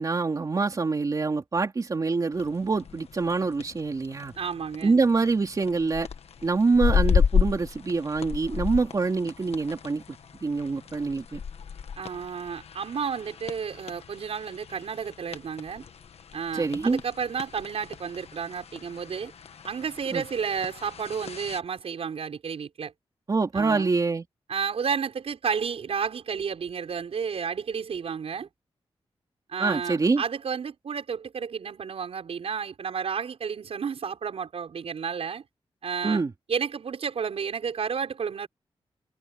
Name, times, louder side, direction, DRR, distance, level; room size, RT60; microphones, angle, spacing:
voice 1, 0.0-4.3 4.8-6.1 6.4-10.0 10.4-11.4 16.5-17.0 20.1-20.2 23.3-24.2 29.6-30.2 36.0-36.3, right 4 dB, 35° right, 3.3 m, -25 dB
sound 1, 2.3-21.6, left 7 dB, 85° left, 1.4 m, -33 dB
voice 2, 4.4-5.0 12.0-15.8 16.3-19.3 19.6-22.9 23.5-23.9 24.5-28.5 29.5-35.4 35.8-36.2 36.5-38.5, right 6 dB, 75° right, 6.4 m, -31 dB
wide cardioid pair, 160°, 10 cm